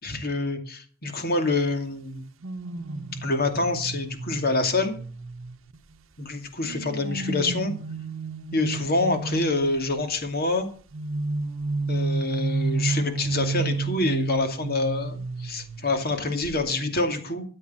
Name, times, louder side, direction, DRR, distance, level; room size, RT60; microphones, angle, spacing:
voice 1, 0.0-2.2 3.2-4.9 6.2-7.7 8.5-10.7 11.9-17.4, left 2 dB, 50° left, 6 dB, 2.5 m, -26 dB
sound 1, 2.4-6.0 6.6-9.9 10.9-16.1 16.4-16.7, right 3 dB, 75° right, 0.9 m, -31 dB
14.0 x 8.3 x 7.5 m, 0.42 s
head